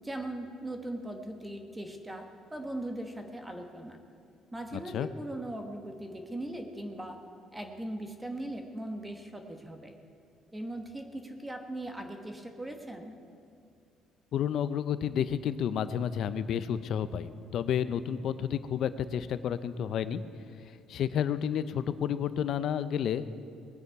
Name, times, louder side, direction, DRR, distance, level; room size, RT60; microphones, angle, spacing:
voice 1, 0.0-2.3 2.5-4.0 4.5-7.2 7.5-9.9 10.5-13.2, right 1 dB, 10° right, 4 dB, 1.2 m, -39 dB
voice 2, 4.7-5.1 14.3-20.2 20.9-23.2, left 9 dB, 60° left, 13 dB, 0.6 m, -31 dB
20.0 x 9.7 x 4.7 m, 2.4 s
cardioid pair, 125°, 0 cm